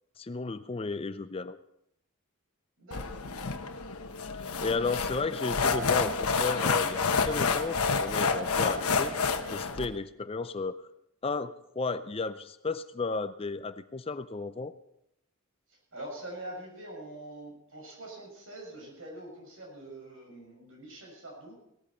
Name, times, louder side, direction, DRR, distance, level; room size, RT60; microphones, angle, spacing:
voice 1, 0.2-1.6 4.4-9.1 9.5-10.8 11.2-14.7, left 4 dB, 25° left, 12 dB, 0.4 m, -33 dB
voice 2, 2.8-3.7 15.7-21.5, right 1 dB, 65° right, 0 dB, 6.5 m, -44 dB
sound 1, 2.9-9.9, left 4 dB, 80° left, 1.1 m, -29 dB
18.5 x 14.0 x 4.4 m, 0.79 s
head